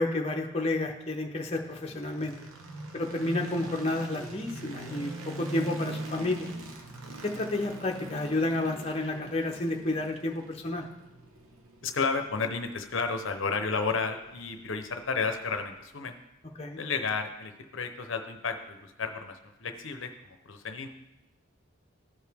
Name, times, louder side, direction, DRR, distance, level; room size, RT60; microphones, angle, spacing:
voice 1, 0.0-2.4 2.9-6.5 7.2-10.8 16.6-16.8, left 2 dB, 30° left, 1 dB, 0.7 m, -30 dB
sound 1, 1.5-15.6, right 2 dB, 90° right, 1.0 m, -43 dB
voice 2, 11.8-16.2 16.8-20.9, left 4 dB, 65° left, 6 dB, 0.7 m, -32 dB
14.0 x 4.8 x 3.5 m, 0.93 s
head